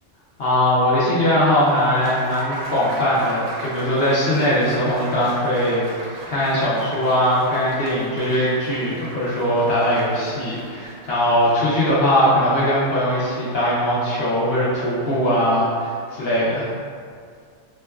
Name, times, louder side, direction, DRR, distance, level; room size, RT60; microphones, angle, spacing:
voice 1, 0.4-16.7, equal, 60° left, -8 dB, 0.8 m, -20 dB
Applause, 1.6-12.0, right 2 dB, 65° right, 0.8 m, -36 dB
4.3 x 2.1 x 2.3 m, 2.1 s
omnidirectional pair, 1.4 m